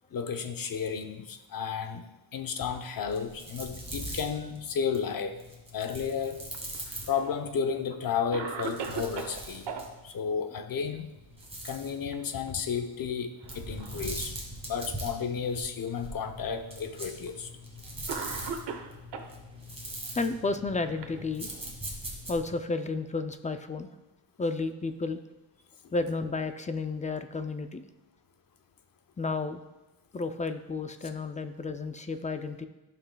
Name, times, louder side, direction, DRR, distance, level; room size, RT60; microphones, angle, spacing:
voice 1, 0.1-5.4 5.7-6.4 7.1-9.7 10.0-11.1 11.6-14.4 14.6-17.5, left 6 dB, 45° left, 7 dB, 0.8 m, -32 dB
sound 1, 3.0-7.5 8.3-10.1 11.1-12.0 13.4-22.6, right 1 dB, 15° right, 1.8 m, -42 dB
Cough, 6.5-7.4 7.9-8.0 8.3-9.8 11.7-12.1 12.5-12.6 13.4-14.1 14.9-15.0 16.0-16.1 17.3-17.4 18.1-19.3 20.3-21.7, right 5 dB, 65° right, 1.0 m, -39 dB
voice 2, 20.1-21.5 22.3-23.9 24.4-25.2 25.9-27.8 29.2-29.6 30.1-32.7, left 3 dB, 20° left, 9 dB, 0.3 m, -32 dB
15.0 x 5.8 x 2.3 m, 1.1 s
cardioid pair, 125°, 46 cm